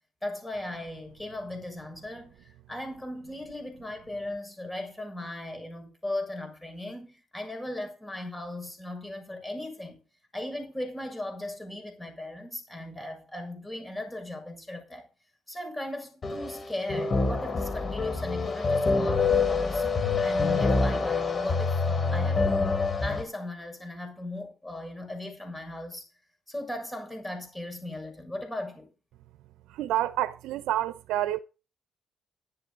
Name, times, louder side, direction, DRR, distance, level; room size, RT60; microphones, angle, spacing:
voice 1, 0.2-10.0 10.3-15.1 15.5-19.8 20.2-26.1 26.5-28.9, left 1 dB, 10° left, 7.2 m, -37 dB
sound 1, 16.2-23.2, left 4 dB, 40° left, 3.2 m, -26 dB
voice 2, 29.7-31.4, right 13 dB, 90° right, 0.7 m, -28 dB
12.5 x 10.0 x 5.3 m
cardioid pair, 90°, 0 cm